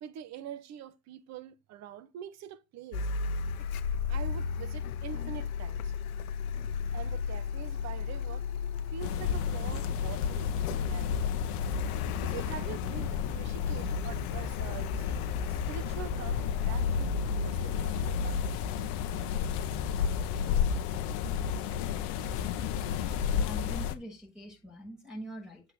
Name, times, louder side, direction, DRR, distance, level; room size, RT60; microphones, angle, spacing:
voice 1, 0.0-3.1 3.6-3.7 4.1-5.9 6.9-8.5 8.9-11.2 12.2-18.5 20.4-20.5, right 10 dB, 35° right, 1.1 m, -45 dB
Car, 2.9-19.8, left 5 dB, 70° left, 1.1 m, -34 dB
sound 1, 9.0-23.9, left 8 dB, 50° left, 1.3 m, -32 dB
voice 2, 23.3-25.6, equal, ahead, 6.0 m, -43 dB
8.1 x 3.8 x 6.6 m
hypercardioid pair, 105°, 44 cm